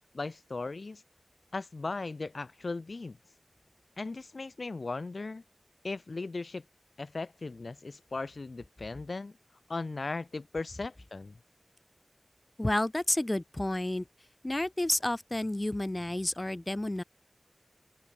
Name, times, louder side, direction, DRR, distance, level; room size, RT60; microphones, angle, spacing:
voice 1, 0.1-1.0 1.5-3.2 4.0-5.4 5.8-6.6 7.0-9.3 9.7-11.4, left 3 dB, 80° left, 0.8 m, -37 dB
voice 2, 12.6-14.1 14.4-17.0, left 1 dB, 30° left, 0.6 m, -30 dB
open air
wide cardioid pair, 50°, 0 cm